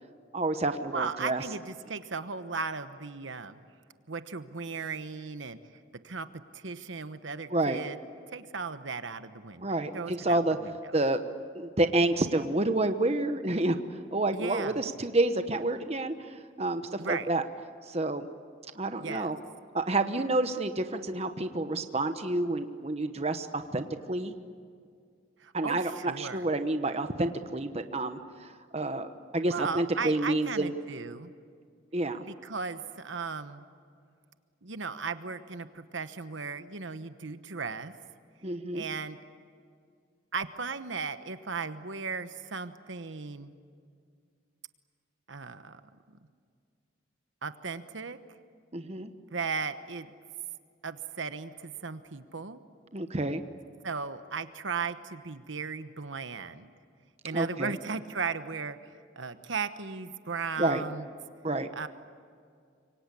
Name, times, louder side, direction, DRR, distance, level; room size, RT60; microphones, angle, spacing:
voice 1, 0.3-1.4 7.5-7.8 9.6-10.6 10.9-11.3 11.5-13.8 14.1-17.4 17.9-18.3 18.8-19.4 19.7-24.3 25.5-30.7 31.9-32.2 38.4-38.8 48.7-49.1 52.9-53.4 57.3-57.7 60.6-60.8 61.4-61.7, right 2 dB, 30° right, 8 dB, 1.1 m, -29 dB
voice 2, 0.9-3.6 4.1-5.6 6.0-6.3 6.5-8.0 8.3-9.7 9.9-11.0 14.3-14.8 17.0-17.3 19.0-19.3 25.4-26.4 29.5-31.3 32.3-33.6 34.6-37.9 38.7-39.2 40.3-43.5 45.3-45.8 47.4-48.2 49.3-50.1 50.8-52.6 53.8-56.7 57.2-58.8 59.2-61.1 61.7-61.9, right 5 dB, 70° right, 10 dB, 1.1 m, -36 dB
27.0 x 24.0 x 8.4 m, 2.2 s
head